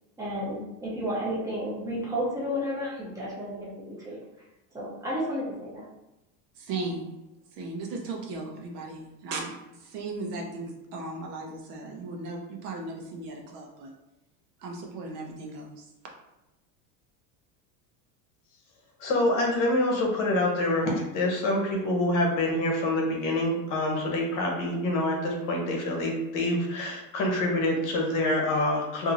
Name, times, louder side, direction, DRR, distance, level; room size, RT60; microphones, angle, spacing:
voice 1, 0.2-4.2 4.7-5.9 6.8-6.9, equal, 5° right, -6 dB, 0.6 m, -32 dB
voice 2, 6.5-7.1 7.5-9.5 9.8-13.9 14.6-15.9, right 3 dB, 90° right, 1 dB, 0.9 m, -36 dB
voice 3, 19.0-29.1, left 1 dB, 45° left, 0 dB, 0.8 m, -26 dB
2.8 x 2.6 x 2.5 m, 0.97 s
supercardioid pair, 145°, 46 cm